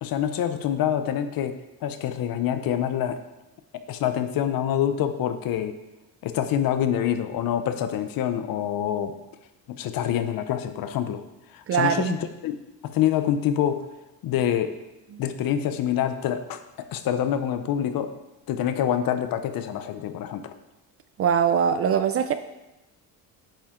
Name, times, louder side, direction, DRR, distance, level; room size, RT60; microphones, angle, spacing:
voice 1, 0.0-3.2 3.9-5.7 6.2-9.1 9.7-11.2 11.5-13.8 14.2-14.7 15.2-18.1 18.5-20.5, left 10 dB, 55° left, 10 dB, 0.8 m, -26 dB
voice 2, 11.7-12.2 15.1-15.2 21.2-22.3, right 7 dB, 35° right, 10 dB, 0.4 m, -22 dB
9.0 x 7.4 x 3.8 m, 0.99 s
cardioid pair, 140°, 41 cm